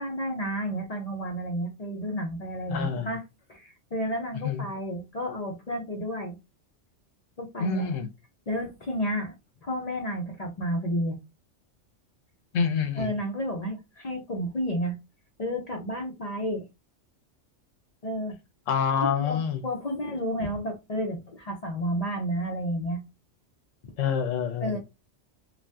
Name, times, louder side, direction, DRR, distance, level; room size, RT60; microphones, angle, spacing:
voice 1, 0.0-3.2 3.5-6.4 7.4-7.9 8.5-9.3 9.6-11.2 13.0-15.0 15.4-16.7 18.0-18.4 19.0-23.0 24.6-24.8, equal, 45° left, 0.5 m, -31 dB
voice 2, 2.7-3.1 4.4-4.7 7.6-8.1 12.5-13.2 18.7-19.6 24.0-24.8, left 6 dB, 90° left, 1.0 m, -27 dB
2.6 x 2.3 x 3.3 m
omnidirectional pair, 1.3 m